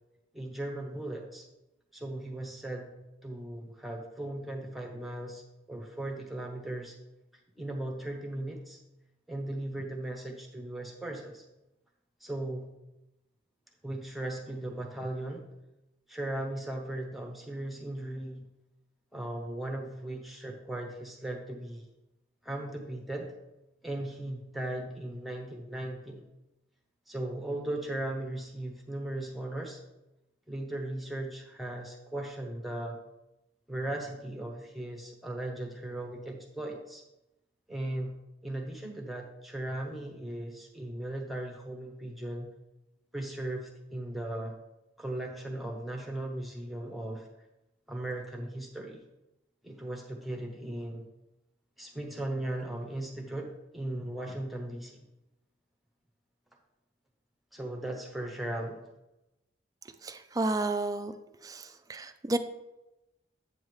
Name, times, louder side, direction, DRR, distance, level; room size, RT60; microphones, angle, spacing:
voice 1, 0.3-1.4 1.9-2.9 3.2-5.4 5.7-6.9 7.6-8.8 9.3-11.4 12.2-12.7 13.8-15.4 16.1-18.4 19.1-21.9 22.4-23.4 23.8-26.3 27.1-29.8 30.5-33.0 33.7-37.0 37.7-38.1 38.4-42.5 43.1-44.6 45.0-47.3 47.9-49.0 49.6-51.1 51.8-55.0 57.5-58.9, right 1 dB, ahead, -1 dB, 0.9 m, -37 dB
voice 2, 60.0-61.1 61.4-62.4, right 2 dB, 20° right, 9 dB, 0.4 m, -31 dB
8.2 x 7.1 x 3.2 m, 0.95 s
head